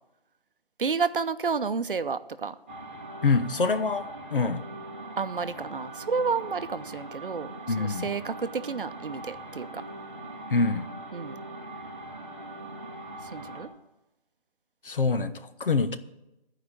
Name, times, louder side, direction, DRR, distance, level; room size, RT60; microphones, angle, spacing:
voice 1, 0.8-2.6 5.2-9.8 11.1-11.4 13.2-13.7, right 5 dB, 65° right, 0.7 m, -31 dB
sound 1, 2.7-13.7, right 2 dB, 15° right, 0.9 m, -41 dB
voice 2, 3.2-4.7 7.7-8.1 10.5-10.9 14.8-16.0, left 4 dB, 65° left, 0.9 m, -25 dB
12.5 x 5.0 x 8.8 m
figure-of-eight pair, 160°, 29 cm